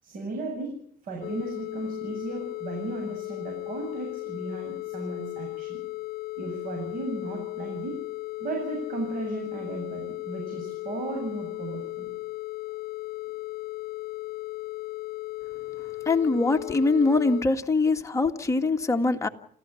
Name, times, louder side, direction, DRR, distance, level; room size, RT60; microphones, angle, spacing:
voice 1, 0.0-5.8 6.4-8.0 8.4-12.1, right 2 dB, 55° right, 3 dB, 7.9 m, -35 dB
sound 1, 1.2-17.4, left 19 dB, 65° left, 1.0 m, -36 dB
voice 2, 16.0-19.3, left 3 dB, 15° left, 4 dB, 1.9 m, -23 dB
29.0 x 15.0 x 7.2 m, 0.62 s
cardioid pair, 110°, 17 cm